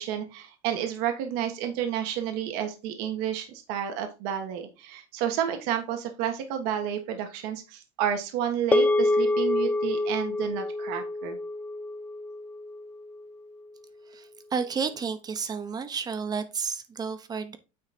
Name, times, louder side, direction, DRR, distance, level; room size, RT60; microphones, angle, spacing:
voice 1, 0.0-11.4, right 9 dB, 70° right, 5 dB, 1.5 m, -30 dB
sound 1, 8.7-13.2, left 2 dB, 10° left, 0.3 m, -27 dB
voice 2, 14.5-17.6, right 5 dB, 25° right, 10 dB, 1.0 m, -31 dB
9.3 x 4.0 x 4.3 m, 0.30 s
supercardioid pair, 135°, 17 cm